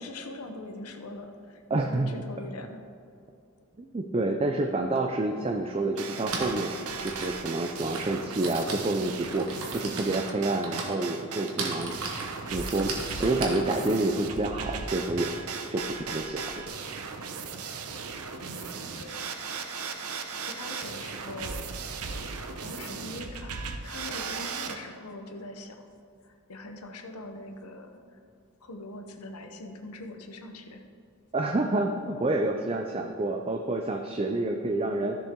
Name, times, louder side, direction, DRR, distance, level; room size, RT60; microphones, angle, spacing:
voice 1, 0.0-2.8 18.4-19.2 20.5-22.0 22.6-23.5 23.8-25.9 26.2-28.2 28.6-30.9, left 2 dB, 90° left, 5 dB, 1.0 m, -42 dB
voice 2, 1.7-2.2 3.8-6.7 7.0-11.9 12.5-15.3 15.7-16.5 31.3-35.2, right 2 dB, 25° right, 3 dB, 0.4 m, -28 dB
Typing, 5.0-5.1 6.0-15.1, right 3 dB, 70° right, 1.5 m, -38 dB
sound 1, 6.0-24.8, right 5 dB, 85° right, 0.8 m, -37 dB
13.5 x 7.0 x 3.7 m, 2.4 s
head